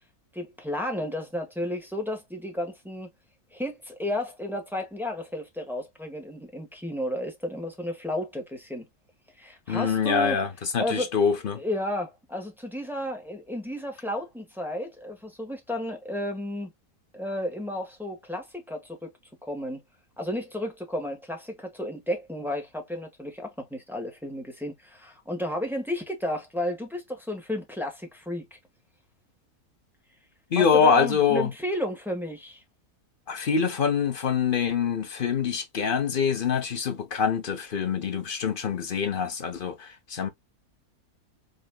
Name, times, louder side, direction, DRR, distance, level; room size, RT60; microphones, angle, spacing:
voice 1, 0.3-3.1 3.5-8.9 9.4-10.4 10.8-11.1 11.5-16.7 17.1-19.1 19.4-19.8 20.2-28.5 30.6-32.6, left 1 dB, ahead, 1.3 m, -32 dB
voice 2, 9.7-11.6 30.5-31.5 33.3-40.3, left 6 dB, 45° left, 0.8 m, -25 dB
5.2 x 2.9 x 2.2 m
omnidirectional pair, 1.6 m